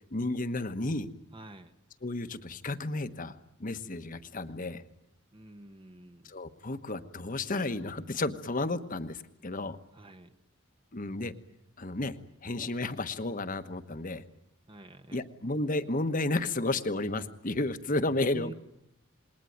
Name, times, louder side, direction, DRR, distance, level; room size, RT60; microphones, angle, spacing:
voice 1, 0.1-1.1 2.0-3.3 3.6-4.8 6.2-9.8 10.9-11.3 11.8-12.2 12.4-14.2 15.1-18.5, left 2 dB, 40° left, 10 dB, 1.2 m, -32 dB
voice 2, 1.3-1.7 5.3-6.3 9.9-10.3 14.7-15.2 18.3-18.5, right 1 dB, 25° right, 8 dB, 1.1 m, -47 dB
27.5 x 21.0 x 9.4 m, 0.82 s
head